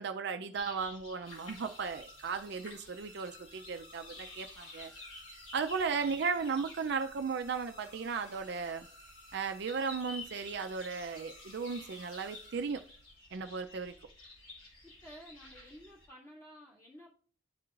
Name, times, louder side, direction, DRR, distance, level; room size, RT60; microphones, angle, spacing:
voice 1, 0.0-4.9 5.5-8.9 9.3-12.8 13.3-14.0, right 5 dB, 55° right, 0.4 m, -36 dB
sound 1, 0.5-16.1, left 2 dB, 80° left, 2.7 m, -52 dB
sound 2, 1.2-13.1, left 1 dB, 55° left, 3.7 m, -57 dB
voice 2, 15.0-17.1, equal, 15° left, 2.1 m, -52 dB
11.0 x 4.6 x 2.4 m
head